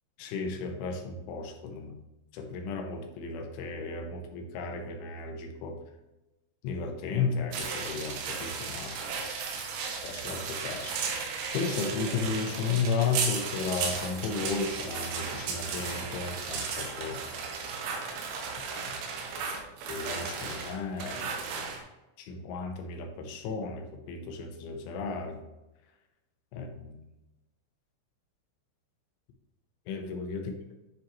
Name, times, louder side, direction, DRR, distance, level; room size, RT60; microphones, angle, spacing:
voice 1, 0.2-2.0 2.3-5.8 6.6-9.0 10.0-17.2 19.2-19.4 19.9-21.3 21.5-21.7 22.2-25.4 26.5-27.0 29.9-30.5, left 4 dB, 80° left, 3 dB, 3.0 m, -34 dB
sound 1, 7.5-21.8, right 5 dB, 90° right, 4.0 m, -35 dB
10.5 x 4.9 x 3.1 m, 0.98 s
omnidirectional pair, 6.0 m